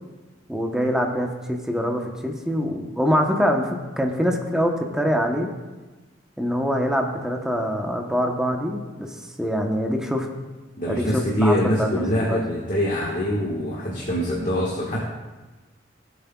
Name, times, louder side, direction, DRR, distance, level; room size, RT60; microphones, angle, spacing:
voice 1, 0.5-5.5 6.4-10.3 10.9-12.4, equal, 5° right, 2 dB, 0.9 m, -24 dB
voice 2, 10.8-15.0, equal, 45° left, -4 dB, 1.5 m, -24 dB
17.0 x 8.0 x 2.3 m, 1.2 s
head